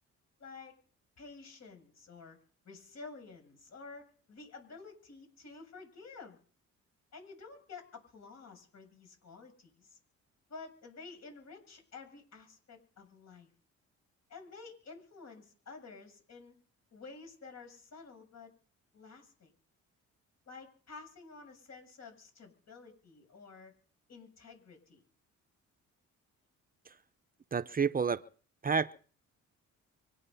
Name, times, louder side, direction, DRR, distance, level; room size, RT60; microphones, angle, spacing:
voice 1, 0.4-0.8 1.2-2.4 2.6-6.4 7.1-10.0 10.5-13.5 14.3-16.6 16.9-18.5 18.9-19.5 20.5-23.7 24.1-25.0, left 4 dB, 60° left, 7.5 m, -51 dB
voice 2, 27.5-28.2 28.6-28.9, right 5 dB, 30° right, 0.7 m, -29 dB
25.0 x 9.9 x 5.6 m
cardioid pair, 90°, 30 cm